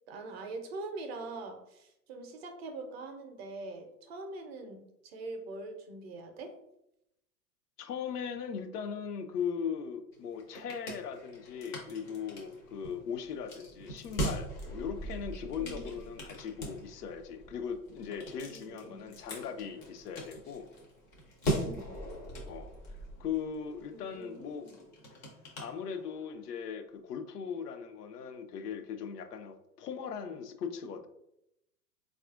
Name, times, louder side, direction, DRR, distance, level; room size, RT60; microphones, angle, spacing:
voice 1, 0.1-6.5 15.6-16.0 18.5-19.0 21.6-21.9 23.9-24.8, right 3 dB, 40° right, 5 dB, 0.5 m, -43 dB
voice 2, 7.8-20.7 22.5-24.7 25.6-31.1, left 7 dB, 70° left, 7 dB, 0.6 m, -39 dB
sound 1, 10.1-26.4, right 1 dB, 20° left, 0.4 m, -41 dB
4.1 x 2.4 x 2.4 m, 0.83 s
hypercardioid pair, 110°, 49 cm